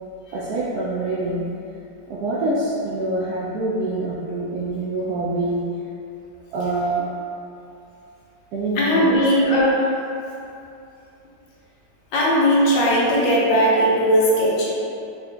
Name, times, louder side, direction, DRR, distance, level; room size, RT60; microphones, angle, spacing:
voice 1, 0.3-1.5 2.1-5.7 6.5-7.1 8.5-9.2, right 2 dB, 80° right, -8 dB, 0.8 m, -25 dB
voice 2, 8.8-9.8 12.1-14.7, equal, 70° left, -5 dB, 1.3 m, -18 dB
3.9 x 2.7 x 3.3 m, 2.7 s
omnidirectional pair, 2.2 m